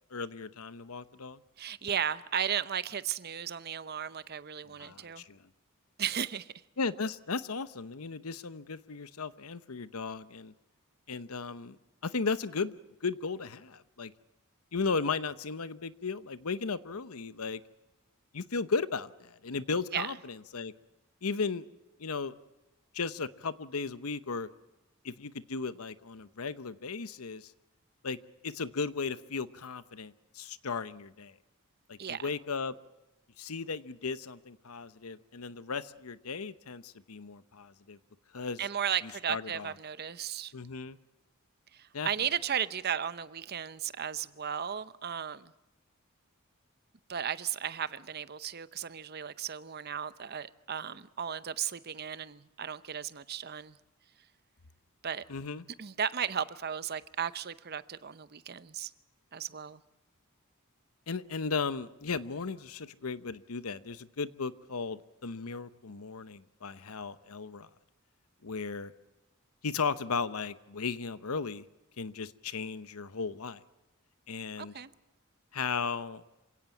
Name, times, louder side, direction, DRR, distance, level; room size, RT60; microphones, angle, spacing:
voice 1, 0.1-1.4 4.8-5.4 6.8-10.5 11.1-11.8 12.0-12.8 13.0-14.1 14.7-17.6 18.3-20.7 21.2-21.7 22.0-22.3 22.9-24.5 25.0-27.5 28.0-28.2 28.4-31.3 31.9-32.7 33.4-38.0 38.3-38.6 39.3-39.7 40.5-41.0 41.9-42.1 55.3-55.6 61.1-67.7 68.4-68.9 69.6-71.6 72.0-73.6 74.3-74.7 75.5-76.2, left 4 dB, 85° left, 0.9 m, -36 dB
voice 2, 1.6-5.2 6.0-6.5 19.9-20.1 32.0-32.3 38.6-40.5 41.7-45.5 47.1-53.8 55.0-55.2 55.8-58.9 59.3-59.8 74.6-74.9, right 8 dB, 45° right, 0.7 m, -35 dB
27.0 x 17.0 x 7.2 m
head